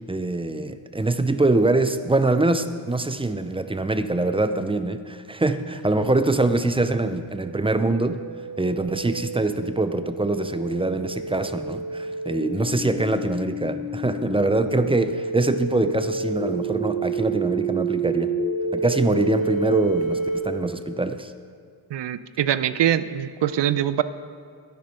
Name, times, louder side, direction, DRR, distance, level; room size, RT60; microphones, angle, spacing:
voice 1, 0.1-8.2 8.6-18.3 18.7-21.3, right 2 dB, 10° right, 10 dB, 0.5 m, -24 dB
sound 1, 7.2-20.4, right 3 dB, 75° left, 2.7 m, -29 dB
voice 2, 21.9-24.0, right 11 dB, 60° right, 14 dB, 0.6 m, -23 dB
13.0 x 10.5 x 4.4 m, 2.2 s
wide cardioid pair, 100°, 48 cm